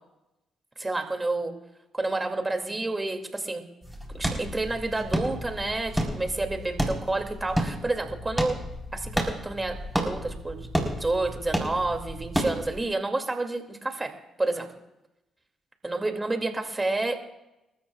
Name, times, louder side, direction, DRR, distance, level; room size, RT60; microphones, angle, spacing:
voice 1, 0.8-1.5 1.9-3.6 4.1-8.6 8.9-10.7 11.0-14.7 15.8-17.2, right 2 dB, 20° right, 4 dB, 2.5 m, -29 dB
sound 1, 3.8-12.8, equal, ahead, 4.1 m, -31 dB
30.0 x 13.5 x 2.4 m, 0.94 s
supercardioid pair, 70°, 0 cm